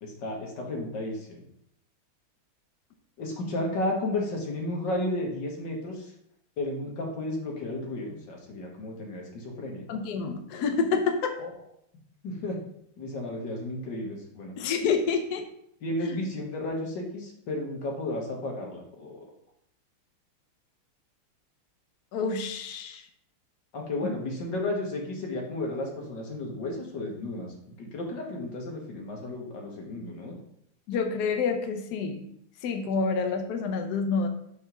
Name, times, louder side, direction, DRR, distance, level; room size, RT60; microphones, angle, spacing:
voice 1, 0.0-1.4 3.2-6.1 6.6-9.9 11.4-11.5 12.2-12.6 13.0-14.5 15.8-19.2 23.7-27.5 27.8-30.4, left 1 dB, 55° left, 0 dB, 1.8 m, -33 dB
voice 2, 9.9-11.4 14.6-15.4 16.0-16.2 22.1-23.1 24.0-24.1 30.9-32.3 32.6-34.3, left 5 dB, 75° left, 5 dB, 0.9 m, -28 dB
5.3 x 3.6 x 5.8 m, 0.72 s
omnidirectional pair, 2.4 m